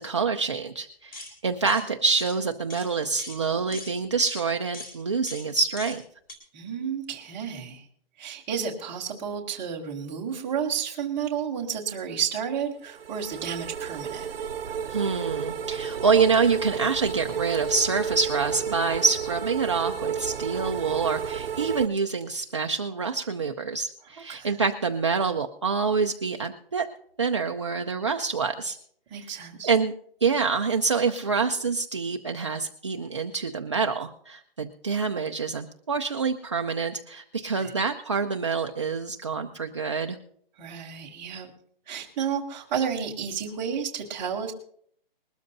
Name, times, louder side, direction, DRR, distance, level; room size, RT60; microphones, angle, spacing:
voice 1, 0.0-6.0 14.9-26.9 27.2-28.8 29.2-29.3 29.6-29.9 30.2-40.2, right 5 dB, 30° right, 3 dB, 0.5 m, -26 dB
sound 1, 1.1-1.3 1.7-1.8 2.2-2.3 2.7-2.9 3.2-3.4 3.7-3.9 4.3-4.4 4.7-4.9 5.3-5.5 5.8-6.0 6.3-6.4, left 2 dB, 20° left, 2.5 m, -40 dB
voice 2, 6.5-7.8 8.2-14.3 24.3-24.6 29.1-29.7 37.5-37.7 40.6-41.5 41.9-44.5, right 7 dB, 5° right, -4 dB, 0.8 m, -31 dB
sound 2, 12.9-21.9, right 7 dB, 70° right, 0.7 m, -32 dB
21.0 x 13.0 x 2.7 m, 0.62 s
hypercardioid pair, 175°, 30 cm